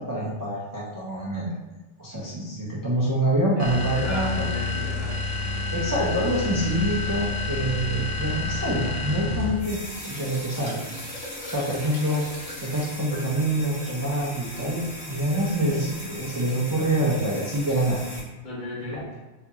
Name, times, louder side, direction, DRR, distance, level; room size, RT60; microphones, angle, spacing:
voice 1, 0.0-1.5 2.0-4.5 5.7-10.8 11.5-12.2 12.6-18.0 18.8-19.2, right 1 dB, 35° right, -6 dB, 0.3 m, -26 dB
voice 2, 3.6-5.2 18.4-19.2, left 1 dB, 75° left, -11 dB, 2.0 m, -35 dB
sound 1, 3.6-9.7, left 3 dB, 85° right, 0.9 m, -29 dB
sound 2, 9.6-18.2, left 1 dB, 45° left, 1.1 m, -38 dB
4.3 x 2.8 x 2.4 m, 1.1 s
omnidirectional pair, 1.2 m